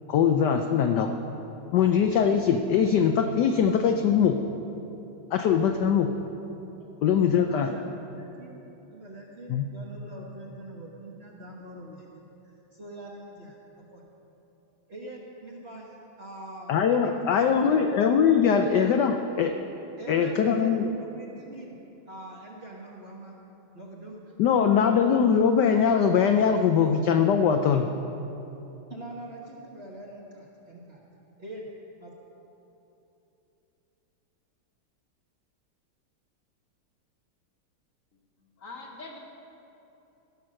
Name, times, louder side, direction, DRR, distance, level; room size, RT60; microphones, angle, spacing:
voice 1, 0.1-1.1 1.7-4.4 5.3-6.1 7.0-7.7 9.5-9.6 16.7-19.5 20.1-20.9 24.4-27.9, left 7 dB, 75° left, 5 dB, 0.9 m, -22 dB
voice 2, 7.3-8.6 8.9-12.1 12.4-14.0 14.9-17.9 18.5-18.7 20.0-21.8 22.1-23.4 23.7-24.4 28.9-31.0 31.4-31.7 32.0-32.1, right 2 dB, 40° right, -3 dB, 1.0 m, -43 dB
voice 3, 38.6-39.2, left 3 dB, 45° left, 0 dB, 1.2 m, -42 dB
16.0 x 5.9 x 6.3 m, 3.0 s
omnidirectional pair, 2.4 m